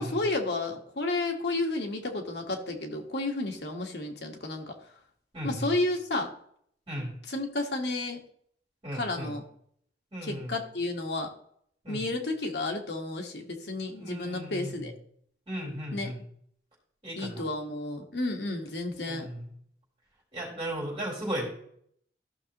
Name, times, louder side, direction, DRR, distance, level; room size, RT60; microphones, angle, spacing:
voice 1, 0.0-4.7 5.4-6.3 7.3-8.2 8.9-9.4 10.2-11.3 11.9-14.9 15.9-16.1 17.2-19.3, left 2 dB, 70° left, 2 dB, 1.5 m, -32 dB
voice 2, 5.3-5.7 6.9-7.1 8.8-9.3 10.1-10.5 11.8-12.0 13.9-14.9 15.5-16.2 17.0-17.5 19.1-19.5 20.3-21.5, right 1 dB, 30° right, -5 dB, 4.1 m, -36 dB
14.0 x 6.3 x 3.0 m, 0.65 s
head